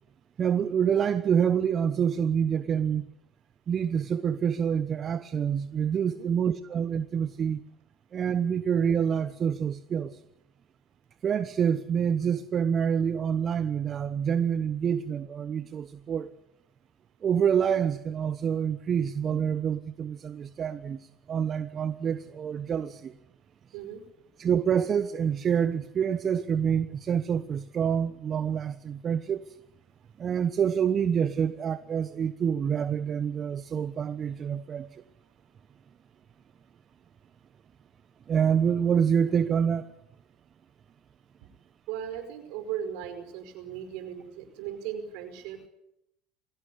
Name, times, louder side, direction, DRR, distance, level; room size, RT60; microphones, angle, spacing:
voice 1, 0.4-3.0 3.7-7.6 8.1-10.2 11.2-16.3 17.2-23.1 24.4-29.5 30.2-35.0 38.3-39.9, right 7 dB, 40° right, 1.1 m, -27 dB
voice 2, 23.7-24.0 41.9-45.7, right 9 dB, 70° right, 5.1 m, -37 dB
22.5 x 16.0 x 9.9 m
hypercardioid pair, 80°, 0 cm